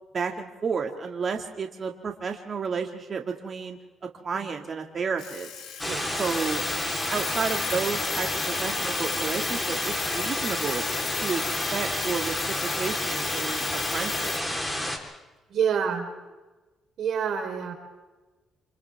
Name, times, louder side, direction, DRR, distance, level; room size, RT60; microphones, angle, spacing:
voice 1, 0.1-3.8 4.2-5.5 6.1-6.6 7.1-10.8 11.2-11.4 11.7-12.3 12.6-14.4, right 5 dB, 45° right, 3 dB, 2.1 m, -31 dB
Alarm, 5.2-14.5, left 10 dB, 80° left, 3.2 m, -35 dB
sound 1, 5.8-15.0, left 1 dB, 5° left, 3.7 m, -30 dB
voice 2, 5.8-6.2 15.5-16.1 17.0-17.7, right 7 dB, 70° right, 4 dB, 3.9 m, -27 dB
29.0 x 27.5 x 3.5 m, 1.2 s
cardioid pair, 90°, 0 cm